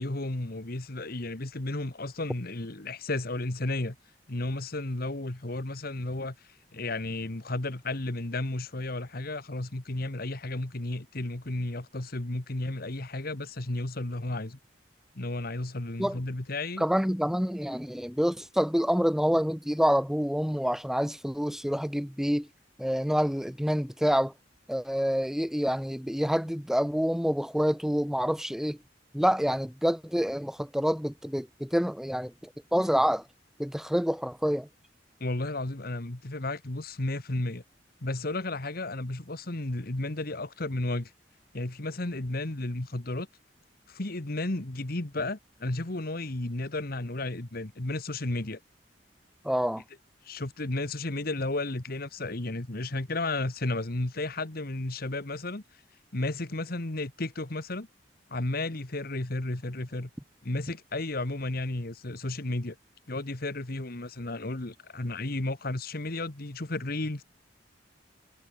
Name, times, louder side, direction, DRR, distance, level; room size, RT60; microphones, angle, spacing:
voice 1, 0.0-3.9 4.3-6.3 6.7-14.6 15.1-16.8 35.2-37.6 38.0-41.1 41.5-43.3 43.9-48.6 50.2-55.6 56.1-57.9 58.3-60.1 60.4-62.7 63.1-67.2, left 2 dB, 55° left, 1.7 m, -33 dB
voice 2, 16.8-22.5 22.8-24.3 24.7-28.8 29.1-32.3 32.7-33.2 33.6-34.7 49.4-49.8, equal, ahead, 1.4 m, -27 dB
head